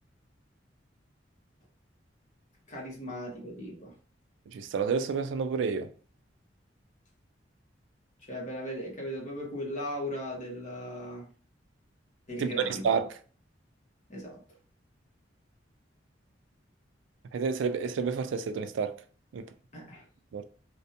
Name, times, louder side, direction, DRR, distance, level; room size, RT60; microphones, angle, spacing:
voice 1, 2.7-3.9 8.3-11.3 12.3-12.9 14.1-14.4 19.7-20.0, equal, 40° left, 1.0 m, -37 dB
voice 2, 4.5-5.9 12.4-13.2 17.3-19.0 19.3-19.5 20.3-20.4, right 5 dB, 80° right, 0.3 m, -29 dB
2.5 x 2.2 x 2.7 m
head